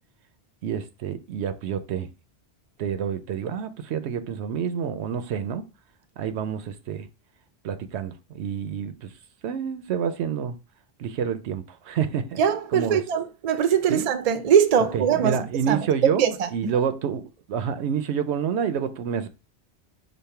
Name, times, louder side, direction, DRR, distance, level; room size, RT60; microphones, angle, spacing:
voice 1, 0.6-2.1 2.8-5.7 6.2-7.1 7.6-9.1 9.4-10.6 11.0-12.4 12.7-13.0 13.9-14.1 14.8-19.3, right 7 dB, 85° right, 0.8 m, -28 dB
voice 2, 12.4-15.4 15.7-15.8 16.2-16.7, right 8 dB, 50° right, 0.5 m, -22 dB
5.3 x 2.1 x 4.2 m
omnidirectional pair, 1.1 m